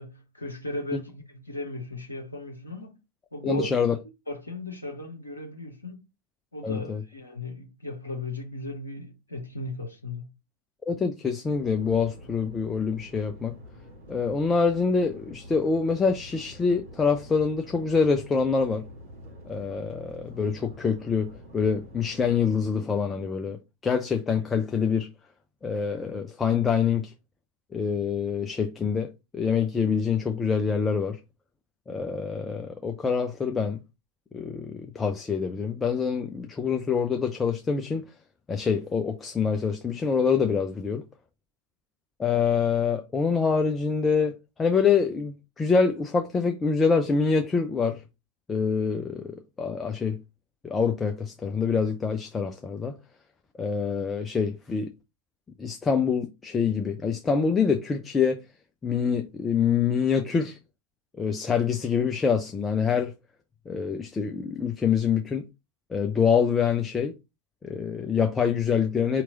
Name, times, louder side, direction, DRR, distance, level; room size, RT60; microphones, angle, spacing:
voice 1, 0.0-3.0 3.3-3.7 4.3-6.1 6.5-10.3, left 2 dB, 75° left, 0.8 m, -36 dB
voice 2, 3.4-4.0 6.6-7.0 10.9-13.5 14.1-18.8 19.5-23.6 23.8-25.1 25.6-27.1 27.7-31.2 31.9-33.8 34.3-38.1 38.5-41.0 42.2-48.0 48.5-50.2 50.6-52.9 53.6-54.9 55.6-58.4 58.8-60.6 61.2-63.1 63.7-65.4 65.9-67.1 67.6-69.2, left 6 dB, 15° left, 0.5 m, -25 dB
sound 1, 11.4-22.5, equal, 55° right, 3.2 m, -47 dB
4.7 x 3.0 x 3.8 m
figure-of-eight pair, 90°, 0 cm